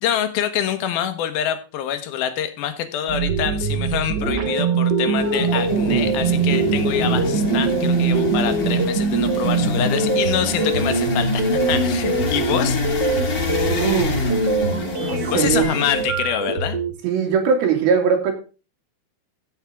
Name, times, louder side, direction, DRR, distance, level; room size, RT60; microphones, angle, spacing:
voice 1, 0.0-12.8 15.3-16.8, left 10 dB, 75° left, 10 dB, 3.0 m, -25 dB
sound 1, 3.1-16.9, right 4 dB, 50° right, 1.3 m, -23 dB
sound 2, 4.1-8.9, right 3 dB, 20° right, 2.2 m, -29 dB
sound 3, 5.2-16.0, left 2 dB, 30° left, 2.7 m, -26 dB
voice 2, 13.7-14.2 15.0-15.7 17.0-18.3, right 6 dB, 75° right, 4 dB, 4.2 m, -20 dB
15.0 x 6.5 x 3.5 m, 0.32 s
omnidirectional pair, 4.4 m